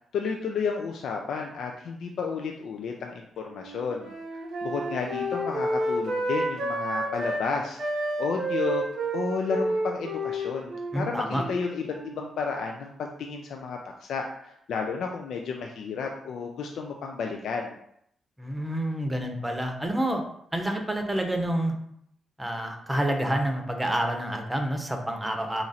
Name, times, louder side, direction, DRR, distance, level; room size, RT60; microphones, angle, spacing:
voice 1, 0.1-4.1 4.6-7.8 8.2-8.8 9.1-17.8, left 5 dB, 75° left, 2 dB, 0.4 m, -32 dB
Wind instrument woodwind instrument, 3.5-7.5 7.8-12.3, right 1 dB, 70° right, 0.7 m, -30 dB
voice 2, 10.9-11.4 18.4-20.2 20.5-21.7 22.4-25.6, right 1 dB, 15° right, 4 dB, 0.7 m, -28 dB
3.0 x 2.5 x 4.1 m, 0.72 s
supercardioid pair, 60°, 0 cm